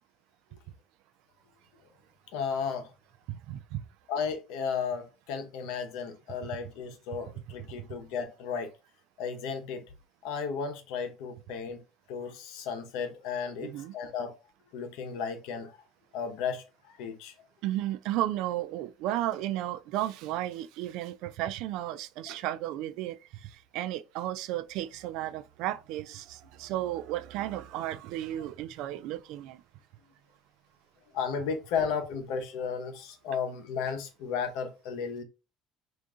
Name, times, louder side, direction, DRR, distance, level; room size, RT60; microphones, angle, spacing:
voice 1, 2.3-2.9 4.1-8.7 9.2-9.8 10.2-14.3 14.7-15.8 16.1-17.3 22.3-22.4 31.1-35.2, left 6 dB, 75° left, 0.9 m, -34 dB
voice 2, 3.3-3.9 13.6-14.0 17.6-29.6, right 13 dB, 65° right, 0.3 m, -34 dB
3.7 x 2.6 x 3.6 m
cardioid pair, 150°, 0 cm